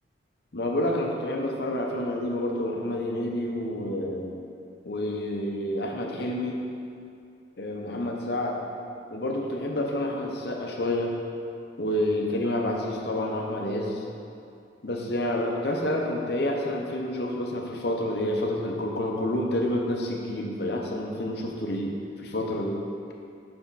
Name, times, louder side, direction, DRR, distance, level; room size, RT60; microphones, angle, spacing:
voice 1, 0.5-4.3 4.8-6.6 7.6-8.6 9.1-11.1 11.8-14.0 14.8-22.8, left 1 dB, 60° left, 0 dB, 0.8 m, -29 dB
6.1 x 5.7 x 4.1 m, 2.5 s
head